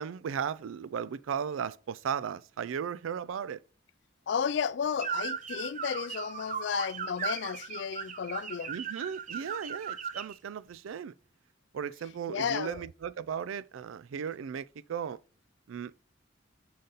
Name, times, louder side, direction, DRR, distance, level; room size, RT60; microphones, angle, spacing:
voice 1, 0.0-3.6 8.7-11.1 11.7-15.2 15.7-15.9, right 7 dB, 90° right, 0.4 m, -36 dB
voice 2, 4.3-8.7 12.3-12.8, left 7 dB, 60° left, 0.3 m, -33 dB
sound 1, 5.0-10.3, right 6 dB, 40° right, 0.6 m, -37 dB
6.5 x 4.0 x 3.9 m
head